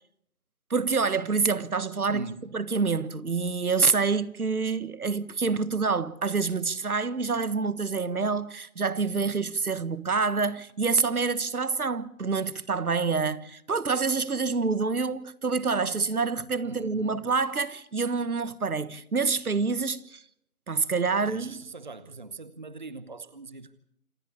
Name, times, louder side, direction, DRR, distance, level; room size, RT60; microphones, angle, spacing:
voice 1, 0.7-2.2 2.5-20.2 20.7-21.6, right 4 dB, 75° right, 1.5 m, -27 dB
voice 2, 2.1-2.5 16.6-17.2 21.3-23.7, right 3 dB, 30° right, 0.8 m, -41 dB
27.5 x 11.5 x 8.5 m
figure-of-eight pair, 165°, 44 cm